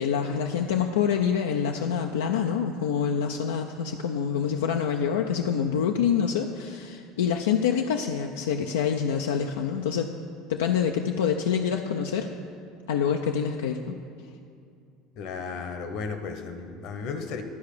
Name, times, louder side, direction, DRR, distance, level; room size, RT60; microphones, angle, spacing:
voice 1, 0.0-10.1 10.5-12.3 12.9-14.0, left 7 dB, 90° left, 3 dB, 0.4 m, -26 dB
voice 2, 15.2-17.4, left 5 dB, 65° left, 7 dB, 0.9 m, -34 dB
12.0 x 4.7 x 6.7 m, 2.4 s
hypercardioid pair, 85°, 0 cm